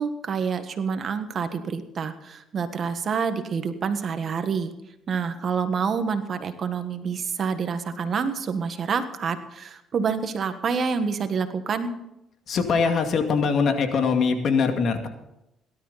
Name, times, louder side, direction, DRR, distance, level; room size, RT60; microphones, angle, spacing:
voice 1, 0.0-4.7 5.1-11.9, right 6 dB, 50° right, 9 dB, 1.5 m, -27 dB
voice 2, 12.5-15.1, left 5 dB, 55° left, 5 dB, 2.2 m, -22 dB
18.0 x 12.5 x 4.2 m, 0.86 s
cardioid pair, 90°, 0 cm